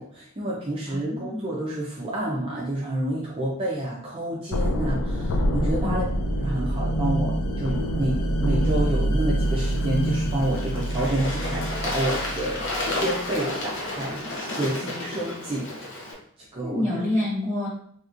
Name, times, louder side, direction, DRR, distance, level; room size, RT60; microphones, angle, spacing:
voice 1, 0.0-6.1 6.4-12.6 13.0-16.1 16.5-16.8, right 1 dB, 25° right, -5 dB, 0.5 m, -29 dB
voice 2, 0.9-1.5 5.8-6.1 16.7-17.7, left 1 dB, 10° left, -6 dB, 1.0 m, -27 dB
sound 1, 4.5-13.4, equal, 85° left, 0.4 m, -26 dB
sound 2, 4.8-10.4, right 1 dB, 80° right, 0.4 m, -37 dB
Bird / Water, 9.4-16.1, left 2 dB, 55° left, 0.8 m, -32 dB
3.4 x 2.8 x 2.5 m, 0.62 s
head